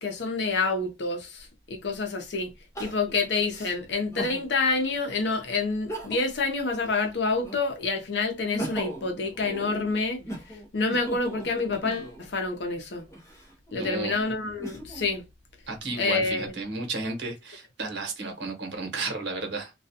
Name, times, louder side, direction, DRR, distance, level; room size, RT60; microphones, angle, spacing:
voice 1, 0.0-10.2 10.7-13.0 13.7-15.3 16.0-16.5, left 3 dB, 70° left, 0.6 m, -28 dB
Crying sobbing, 1.4-1.5 2.7-4.4 5.0-5.1 5.7-6.4 6.8-7.8 8.3-12.3 13.0-15.1 15.6-16.5, right 1 dB, 15° left, 0.6 m, -39 dB
voice 2, 13.7-14.2 15.7-19.7, right 3 dB, 75° right, 0.9 m, -33 dB
2.3 x 2.2 x 2.7 m
head